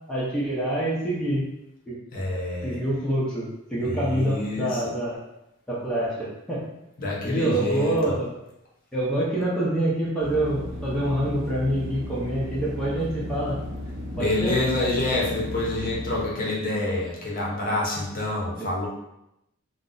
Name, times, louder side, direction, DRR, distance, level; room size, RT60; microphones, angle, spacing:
voice 1, 0.1-1.4 1.9-2.0 2.6-5.2 5.7-6.6 7.2-8.3 8.9-13.6 14.2-14.5, right 1 dB, 5° left, -8 dB, 0.6 m, -26 dB
voice 2, 2.1-2.8 3.8-5.0 7.0-8.2 14.1-18.9, left 2 dB, 45° left, -4 dB, 0.7 m, -27 dB
sound 1, 10.2-16.3, left 1 dB, 50° right, 0.6 m, -35 dB
2.5 x 2.1 x 3.8 m, 0.86 s
head